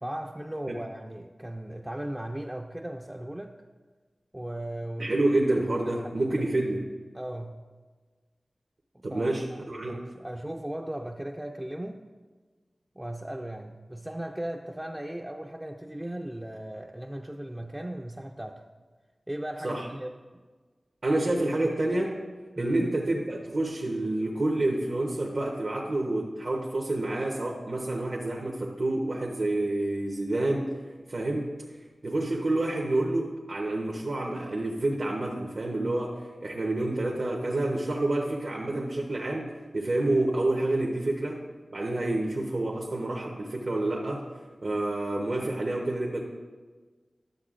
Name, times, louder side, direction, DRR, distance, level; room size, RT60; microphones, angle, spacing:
voice 1, 0.0-3.6 4.3-5.2 5.9-6.1 7.1-7.6 8.9-9.4 9.9-12.0 13.0-18.7 19.3-20.1 22.6-22.8, right 1 dB, 15° right, 2 dB, 0.4 m, -37 dB
voice 2, 5.0-6.9 9.0-10.0 19.6-19.9 21.0-22.2 22.6-30.8 31.1-41.4 41.7-44.3 44.6-46.2, right 2 dB, 65° right, -2 dB, 0.8 m, -28 dB
11.5 x 7.0 x 2.5 m, 1.4 s
cardioid pair, 45°, 0 cm